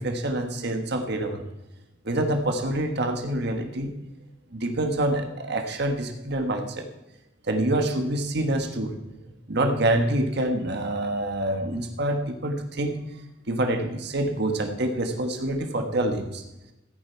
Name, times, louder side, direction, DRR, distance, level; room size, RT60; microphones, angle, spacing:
voice 1, 0.0-1.4 2.0-3.9 4.5-6.9 7.5-9.0 9.5-13.0 13.5-16.4, right 1 dB, 60° right, 4 dB, 1.5 m, -26 dB
15.0 x 8.9 x 4.6 m, 0.95 s
head